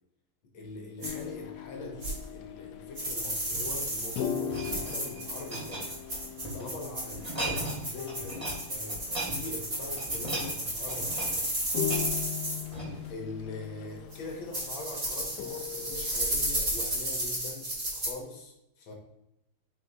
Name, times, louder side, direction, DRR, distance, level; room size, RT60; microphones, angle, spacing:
voice 1, 0.5-5.9 6.5-11.5 13.1-18.9, left 2 dB, 65° left, 2 dB, 1.9 m, -42 dB
sound 1, 1.0-16.3, left 10 dB, 90° left, 0.9 m, -40 dB
sound 2, 1.0-1.1 2.0-2.1 3.0-12.6 14.1-14.2 14.5-18.1, right 1 dB, 30° right, 2.3 m, -33 dB
sound 3, 3.5-6.6 7.1-8.6 8.9-13.2 13.7-13.9, right 2 dB, 15° right, 2.5 m, -38 dB
8.5 x 4.7 x 2.8 m, 0.86 s
omnidirectional pair, 2.4 m